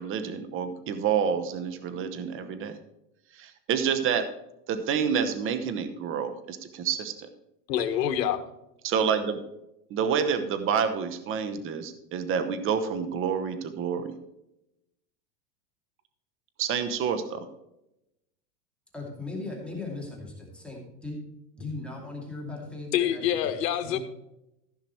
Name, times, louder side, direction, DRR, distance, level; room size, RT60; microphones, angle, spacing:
voice 1, 0.0-2.7 3.3-4.3 4.7-7.3 8.8-9.4 9.9-14.1 16.6-17.4, right 7 dB, 25° right, 10 dB, 1.0 m, -28 dB
voice 2, 7.7-8.4 22.9-24.0, left 10 dB, 80° left, 8 dB, 1.5 m, -26 dB
voice 3, 18.9-21.2 21.5-23.5 23.8-24.0, left 2 dB, ahead, -3 dB, 2.4 m, -38 dB
14.5 x 5.9 x 4.5 m, 0.87 s
supercardioid pair, 140°, 49 cm